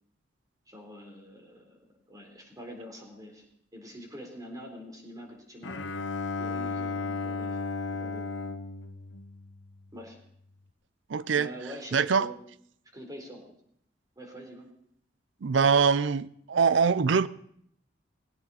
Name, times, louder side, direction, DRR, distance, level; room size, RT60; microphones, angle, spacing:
voice 1, 0.7-1.8 2.1-3.4 3.7-5.8 6.4-7.6 7.9-8.4 9.9-10.2 11.3-12.4 12.9-13.4 14.2-14.7, equal, 20° right, 3.8 m, -45 dB
Bowed string instrument, 5.6-10.0, left 4 dB, 80° left, 1.0 m, -34 dB
voice 2, 11.1-11.5 11.9-12.3 15.4-17.3, right 5 dB, 80° right, 0.5 m, -23 dB
18.5 x 16.5 x 4.1 m
head